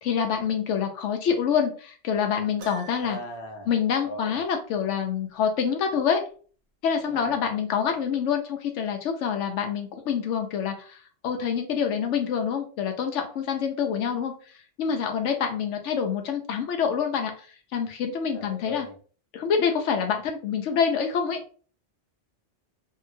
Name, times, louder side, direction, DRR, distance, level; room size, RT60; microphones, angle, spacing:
voice 1, 0.0-3.2 3.7-6.2 6.8-14.3 14.8-17.5 17.7-18.9 19.3-21.4, left 7 dB, 85° left, 5 dB, 0.9 m, -26 dB
Piano, 2.6-3.4, right 5 dB, 65° right, 0.9 m, -44 dB
voice 2, 3.0-3.7 4.0-4.4 7.0-7.4 18.3-18.9, left 2 dB, 55° left, 3 dB, 0.8 m, -38 dB
2.8 x 2.8 x 2.5 m, 0.41 s
omnidirectional pair, 1.2 m